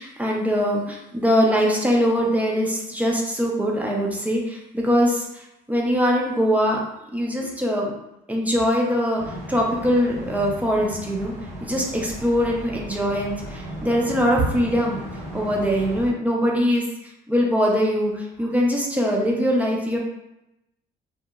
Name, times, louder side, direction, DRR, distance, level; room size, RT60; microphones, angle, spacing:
voice 1, 0.0-5.4 5.7-6.8 7.1-7.9 8.3-11.3 11.6-15.0 15.3-16.8 17.3-20.0, equal, 10° right, -1 dB, 0.5 m, -22 dB
sound 1, 9.2-16.1, right 1 dB, 45° right, 0.7 m, -36 dB
2.8 x 2.1 x 2.3 m, 0.87 s
cardioid pair, 110°, 17 cm